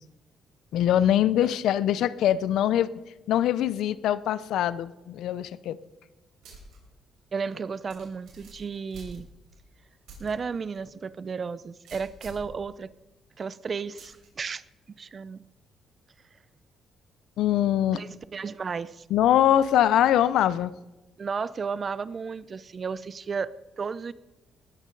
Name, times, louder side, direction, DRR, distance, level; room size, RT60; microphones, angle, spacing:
voice 1, 0.7-2.9 3.3-5.8 17.4-18.0 19.1-20.7, left 11 dB, 80° left, 17 dB, 0.6 m, -23 dB
sound 1, 6.4-6.8 7.2-7.3 7.9-9.6 10.1-10.3 10.7-10.8 11.8-12.5 14.0-14.3, right 2 dB, 80° right, 6.2 m, -47 dB
voice 2, 7.3-9.3 10.2-12.9 13.4-14.6 14.9-15.4 17.9-19.0 21.2-24.1, right 5 dB, 40° right, 18 dB, 0.6 m, -33 dB
19.0 x 14.0 x 4.0 m, 1.1 s
cardioid pair, 90°, 0 cm